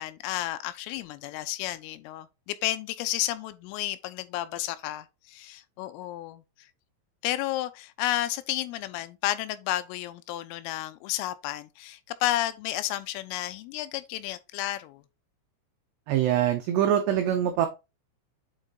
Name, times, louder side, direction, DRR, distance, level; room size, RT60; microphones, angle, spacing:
voice 1, 0.0-6.4 7.2-15.0, left 15 dB, 85° left, 3.3 m, -32 dB
voice 2, 16.1-17.7, right 10 dB, 90° right, 2.3 m, -24 dB
8.2 x 3.9 x 3.8 m
omnidirectional pair, 5.8 m